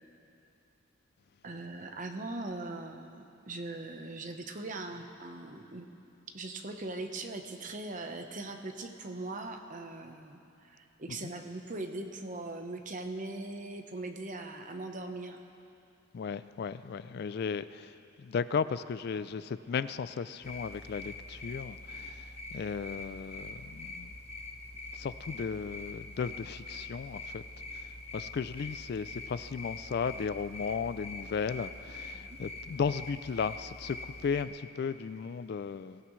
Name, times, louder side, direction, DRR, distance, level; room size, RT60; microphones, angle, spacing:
voice 1, 1.4-5.9 6.3-15.4 32.1-32.4, right 2 dB, 40° right, 5 dB, 1.0 m, -40 dB
voice 2, 16.1-24.1 24.9-27.4 28.1-36.0, left 6 dB, 50° left, 14 dB, 0.3 m, -35 dB
sound 1, 20.4-34.4, left 2 dB, 30° left, 1.2 m, -44 dB
23.5 x 16.0 x 3.2 m, 2.7 s
head